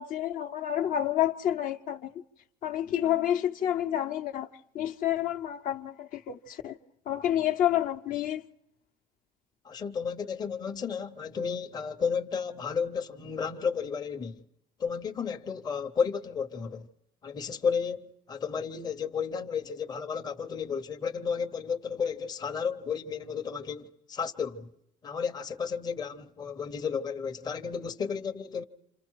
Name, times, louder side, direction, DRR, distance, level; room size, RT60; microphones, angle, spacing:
voice 1, 0.0-2.1 2.6-4.5 4.7-6.8 7.1-8.4, left 11 dB, 50° left, 0.8 m, -29 dB
voice 2, 9.6-14.4 14.8-16.9 17.2-24.7 25.0-28.6, left 6 dB, 25° left, 0.8 m, -32 dB
28.0 x 27.0 x 4.6 m
cardioid pair, 145°, 17 cm